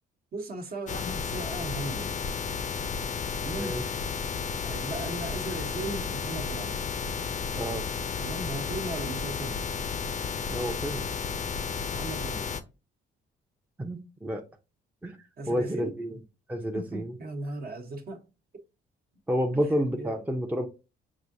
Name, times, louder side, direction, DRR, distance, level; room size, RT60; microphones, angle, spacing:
voice 1, 0.3-2.2 3.4-3.8 4.6-6.9 8.2-9.6 11.9-12.6 15.4-15.9 16.7-18.2 20.0-20.2, right 2 dB, 50° right, 1.1 m, -37 dB
sound 1, 0.9-12.6, left 6 dB, 40° left, 0.5 m, -32 dB
voice 2, 7.5-7.8 10.5-11.1 13.8-14.4 15.0-15.2 15.5-16.2 16.5-17.1 19.3-20.7, equal, 10° right, 0.6 m, -30 dB
6.0 x 2.6 x 2.6 m
cardioid pair, 90°, 20 cm